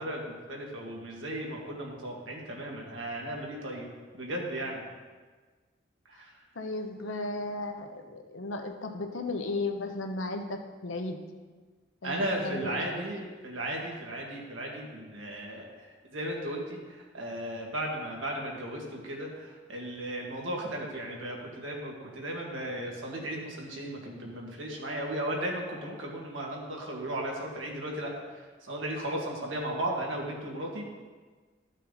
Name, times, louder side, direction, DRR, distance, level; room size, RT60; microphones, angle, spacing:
voice 1, 0.0-3.9 4.1-4.8 6.1-6.3 12.0-15.7 16.1-30.9, right 1 dB, 85° right, -1 dB, 2.0 m, -35 dB
voice 2, 6.5-11.2 12.0-13.0, left 2 dB, 85° left, 5 dB, 1.0 m, -35 dB
13.0 x 6.4 x 4.1 m, 1.4 s
head